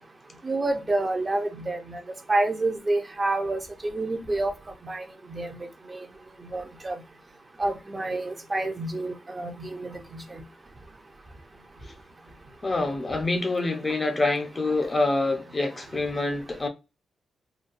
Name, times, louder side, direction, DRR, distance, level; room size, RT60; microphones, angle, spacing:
voice 1, 0.4-2.0 2.3-4.5 4.8-5.0 5.3-5.6 5.9-6.0 6.5-7.0 7.6-10.2, right 2 dB, 25° right, 0.5 m, -28 dB
voice 2, 12.6-16.7, left 2 dB, 25° left, 0.5 m, -26 dB
3.9 x 2.1 x 2.5 m
wide cardioid pair, 135°, 0 cm